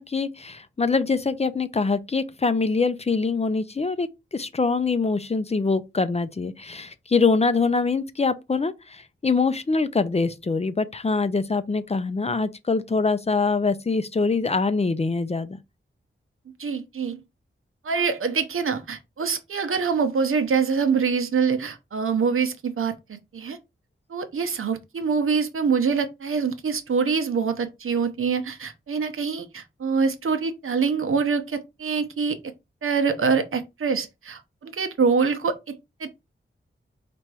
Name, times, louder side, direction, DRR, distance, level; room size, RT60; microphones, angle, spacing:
voice 1, 0.0-15.6, left 4 dB, 30° left, 0.5 m, -24 dB
voice 2, 16.6-17.2 17.8-23.6 24.1-32.5 32.8-36.1, right 5 dB, 80° right, 0.8 m, -25 dB
4.4 x 2.6 x 4.6 m
wide cardioid pair, 80°, 21 cm